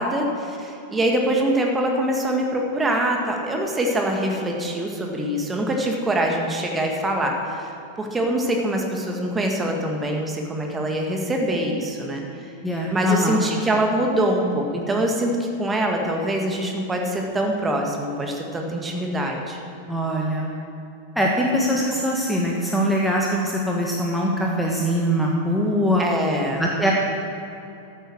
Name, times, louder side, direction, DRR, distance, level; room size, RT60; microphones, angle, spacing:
voice 1, 0.0-7.7 8.0-12.2 12.9-19.6 26.0-26.7, right 1 dB, 15° right, 2 dB, 1.8 m, -24 dB
voice 2, 12.6-13.4 19.9-20.5 21.1-26.0 26.6-26.9, equal, ahead, -3 dB, 1.5 m, -22 dB
13.5 x 9.3 x 6.3 m, 2.8 s
figure-of-eight pair, 90°, 0 cm